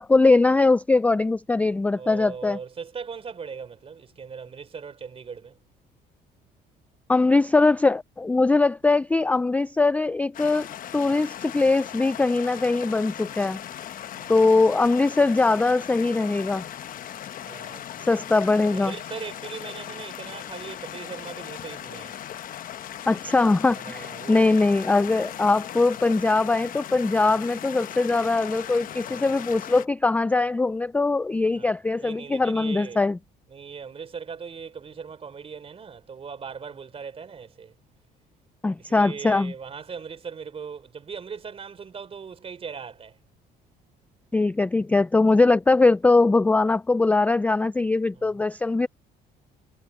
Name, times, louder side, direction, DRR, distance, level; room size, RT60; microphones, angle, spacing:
voice 1, 0.0-2.6 7.1-10.7 10.9-13.6 14.3-16.6 18.1-18.9 23.1-33.2 38.6-39.5 44.3-48.9, left 3 dB, 10° left, 0.3 m, -21 dB
voice 2, 1.9-5.6 14.1-14.4 17.4-18.2 18.7-22.2 23.7-24.6 29.0-29.4 31.6-33.0 33.5-37.7 38.8-43.2 48.1-48.5, right 6 dB, 35° right, 3.5 m, -39 dB
sound 1, 10.3-29.9, left 10 dB, 55° left, 1.0 m, -38 dB
cardioid pair, 110°, 17 cm